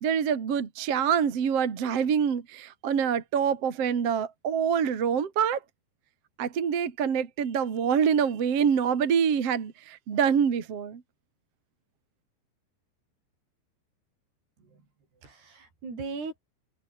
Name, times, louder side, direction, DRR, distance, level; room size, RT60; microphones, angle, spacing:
voice 1, 0.0-5.6 6.4-9.7 10.1-11.0, right 7 dB, 40° right, 2.7 m, -25 dB
voice 2, 15.1-16.4, right 4 dB, 60° right, 9.7 m, -39 dB
omnidirectional pair, 5.4 m